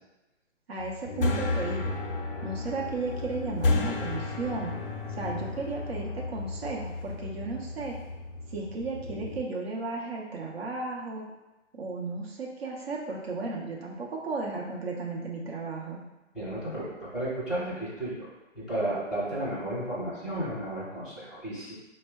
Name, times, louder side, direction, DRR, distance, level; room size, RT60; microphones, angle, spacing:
voice 1, 0.7-2.0 2.4-4.7 5.1-8.0 8.5-11.2 11.7-16.0, right 3 dB, 55° right, -2 dB, 0.8 m, -34 dB
sound 1, 0.8-9.4, left 3 dB, 50° left, 0.5 m, -32 dB
voice 2, 16.3-18.3 18.5-21.7, right 1 dB, ahead, -12 dB, 0.7 m, -33 dB
4.4 x 2.1 x 3.4 m, 1.0 s
figure-of-eight pair, 140°, 37 cm